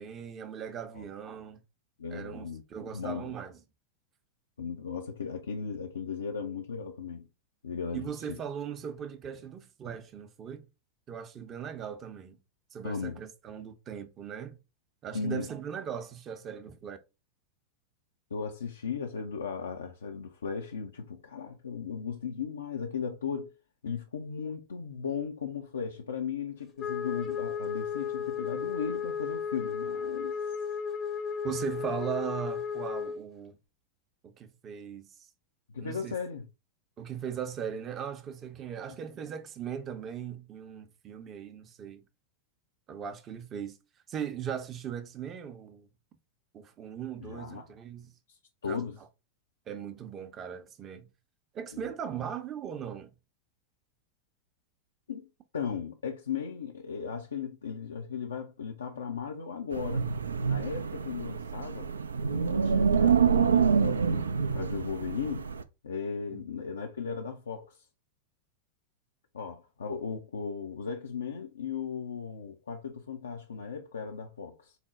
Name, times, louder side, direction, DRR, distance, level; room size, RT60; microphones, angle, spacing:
voice 1, 0.0-1.6 2.1-3.6 7.9-10.7 11.1-12.4 12.7-14.6 15.0-17.0 31.4-33.6 34.2-35.2 35.8-36.2 37.0-42.0 42.9-43.8 44.1-45.9 46.5-48.1 48.6-48.9 49.7-51.1 51.5-53.1 66.3-66.4, right 8 dB, 30° right, 0.6 m, -39 dB
voice 2, 2.0-2.6 2.9-3.3 4.6-7.3 7.6-8.4 12.8-13.2 15.1-15.5 18.3-23.5 23.8-30.4 35.7-36.5 47.2-47.7 48.3-49.0 51.7-51.9 55.1-60.1 60.5-61.9 62.3-65.5 65.8-67.9 69.3-74.8, left 6 dB, 70° left, 0.4 m, -36 dB
Wind instrument woodwind instrument, 26.8-33.2, left 6 dB, 25° left, 0.6 m, -34 dB
Wind, 59.7-65.6, right 6 dB, 75° right, 0.3 m, -27 dB
4.1 x 2.0 x 3.6 m
figure-of-eight pair, 90°, 0 cm